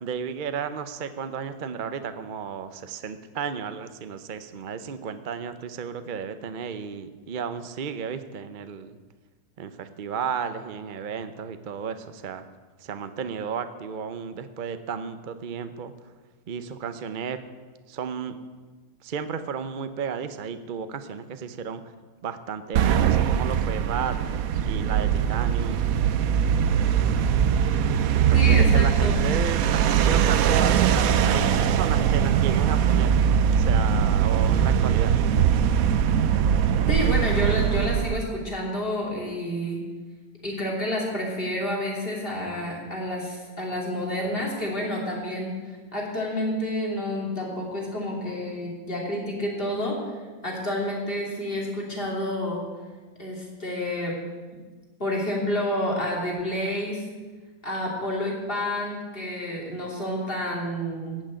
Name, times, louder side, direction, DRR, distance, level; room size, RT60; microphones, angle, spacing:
voice 1, 0.0-9.0 9.6-12.5 12.8-15.9 16.5-17.4 17.9-18.3 19.0-21.8 22.2-24.2 24.6-26.0 28.1-33.1 33.6-35.1, right 6 dB, 45° right, 10 dB, 0.7 m, -33 dB
sound 1, 22.8-38.3, right 8 dB, 75° right, 1.1 m, -21 dB
voice 2, 28.3-29.2 36.9-39.8 40.4-50.0 50.4-52.6 53.2-54.2 55.0-57.0 57.6-61.2, left 1 dB, 40° left, -2 dB, 3.2 m, -29 dB
14.5 x 6.3 x 9.0 m, 1.3 s
omnidirectional pair, 1.5 m